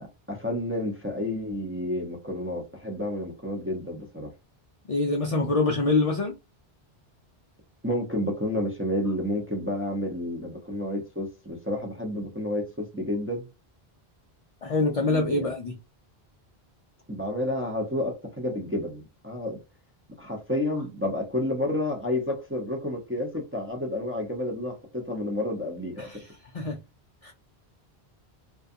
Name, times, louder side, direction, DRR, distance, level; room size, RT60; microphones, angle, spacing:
voice 1, 0.0-4.3 7.8-13.5 15.1-15.5 17.1-19.6 20.2-26.2, left 1 dB, 15° right, 0.5 m, -30 dB
voice 2, 4.9-6.3 14.6-15.8 26.0-26.2 26.5-26.8 27.2-27.3, left 3 dB, 55° left, 0.4 m, -25 dB
2.4 x 2.3 x 2.5 m
omnidirectional pair, 1.0 m